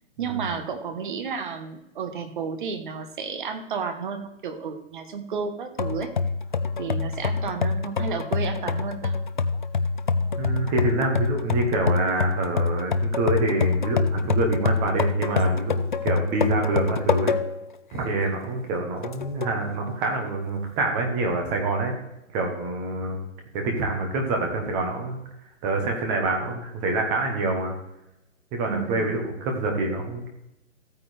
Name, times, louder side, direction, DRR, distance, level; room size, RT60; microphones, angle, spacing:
voice 1, 0.2-6.1 6.8-9.1 28.7-29.1, right 6 dB, 35° right, 7 dB, 1.2 m, -32 dB
sound 1, 5.8-17.7 18.2-18.3 19.0-19.6, left 4 dB, 40° left, 0.4 m, -26 dB
voice 2, 10.4-17.3 17.9-21.9 22.3-23.3 23.5-25.2 25.6-27.7 28.5-30.3, right 2 dB, 10° right, 2 dB, 1.0 m, -26 dB
14.5 x 8.9 x 3.3 m, 0.88 s
hypercardioid pair, 165°, 41 cm